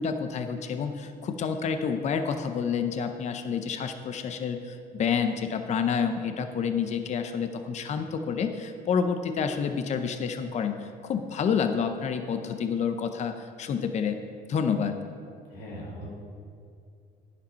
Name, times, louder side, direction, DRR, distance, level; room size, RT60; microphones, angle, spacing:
voice 1, 0.0-14.2 14.5-15.0, left 6 dB, 45° left, 7 dB, 0.6 m, -29 dB
voice 2, 15.5-16.1, equal, 70° left, -5 dB, 2.0 m, -39 dB
10.0 x 5.2 x 5.5 m, 2.4 s
cardioid pair, 110°, 17 cm